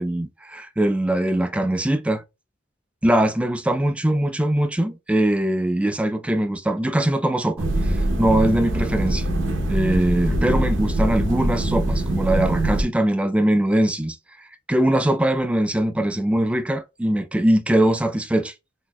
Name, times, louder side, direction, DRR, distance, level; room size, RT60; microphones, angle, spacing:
voice 1, 0.0-2.2 3.0-9.3 9.7-14.2 14.7-18.5, right 1 dB, 5° right, 0.3 m, -21 dB
sound 1, 7.6-12.8, right 1 dB, 70° right, 0.6 m, -23 dB
3.9 x 2.7 x 2.3 m
head